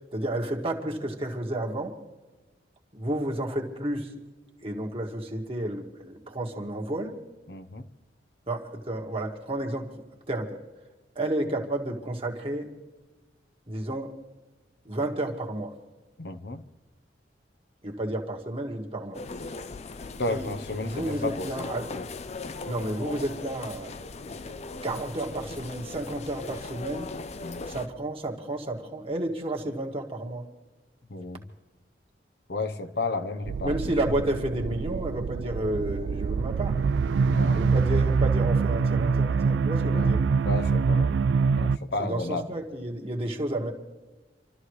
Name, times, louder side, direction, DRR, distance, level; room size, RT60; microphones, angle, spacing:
voice 1, 0.1-2.0 2.9-4.1 4.6-7.2 8.5-10.6 11.2-12.7 13.7-14.2 14.9-15.8 17.8-19.2 20.3-22.0 22.7-23.9 24.8-27.1 27.7-30.5 33.6-36.8 37.5-40.2 42.0-43.7, right 1 dB, 30° right, 1.8 m, -31 dB
voice 2, 7.5-7.9 16.2-16.6 20.2-21.6 21.9-22.0 27.4-27.7 31.1-31.4 32.5-33.7 37.3-37.7 39.9-40.2 40.4-41.2 41.5-42.5, left 2 dB, 60° left, 0.9 m, -32 dB
sound 1, 19.1-27.9, left 3 dB, 35° left, 0.5 m, -39 dB
sound 2, 33.4-41.8, right 5 dB, 85° right, 0.4 m, -25 dB
28.0 x 13.0 x 3.2 m
head